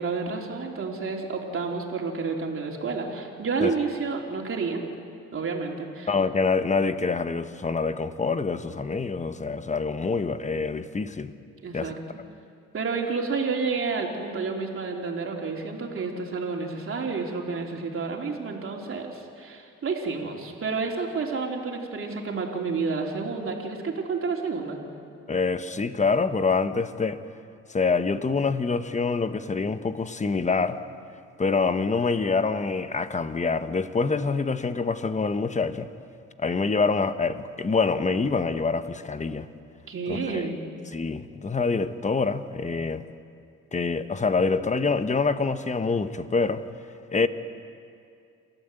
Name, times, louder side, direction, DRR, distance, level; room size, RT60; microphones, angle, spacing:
voice 1, 0.0-4.8 5.3-6.1 11.6-12.2 12.7-24.8 39.9-40.6, right 4 dB, 45° right, 3.5 m, -30 dB
voice 2, 6.1-11.3 11.7-12.0 25.3-27.2 27.7-30.8 31.4-35.9 36.4-39.5 40.1-40.5 40.9-43.0 43.7-46.6 47.1-47.3, left 4 dB, 25° left, 1.0 m, -26 dB
29.0 x 13.0 x 8.0 m
cardioid pair, 90°, 30 cm